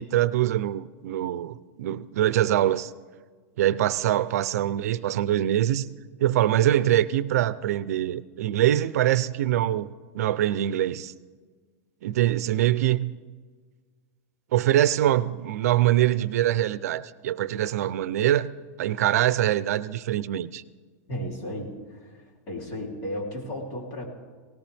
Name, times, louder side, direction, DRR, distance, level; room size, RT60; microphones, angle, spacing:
voice 1, 0.0-2.9 3.6-5.9 6.2-11.1 12.0-13.1 14.5-18.5 18.8-20.6, right 12 dB, 80° right, 0.5 m, -24 dB
voice 2, 21.1-24.1, equal, 35° left, 3.3 m, -34 dB
18.5 x 17.5 x 3.5 m
supercardioid pair, 170°, 8 cm